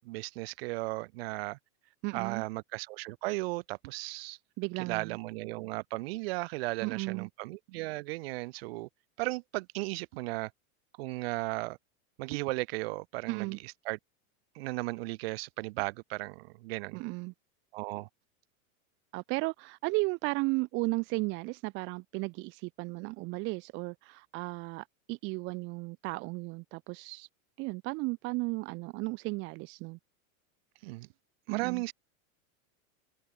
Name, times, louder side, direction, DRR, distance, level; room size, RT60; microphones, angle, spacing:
voice 1, 0.0-1.6 2.1-4.4 4.8-8.9 9.2-10.5 11.0-11.8 12.2-14.0 14.5-17.0 17.7-18.1 30.8-31.1 31.5-31.9, right 22 dB, 45° right, 1.6 m, -36 dB
voice 2, 2.0-2.4 4.6-5.2 6.8-7.3 13.3-13.6 16.9-17.3 19.1-27.3 27.6-30.0 31.5-31.8, right 25 dB, 25° right, 1.1 m, -34 dB
supercardioid pair, 170°, 43 cm